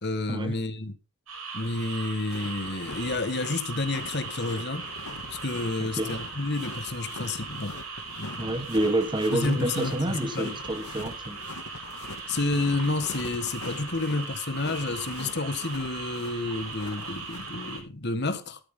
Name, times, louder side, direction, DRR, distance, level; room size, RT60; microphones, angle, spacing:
voice 1, 0.0-0.9 1.5-4.9 5.3-7.8 8.2-8.6 9.3-10.6 12.3-18.6, left 2 dB, 50° left, 1.5 m, -30 dB
sound 1, 1.3-17.8, right 4 dB, 85° right, 7.1 m, -39 dB
sound 2, 2.3-17.8, left 3 dB, 90° left, 2.2 m, -43 dB
voice 2, 8.4-11.4, right 1 dB, 20° right, 1.4 m, -28 dB
13.5 x 13.0 x 3.8 m
head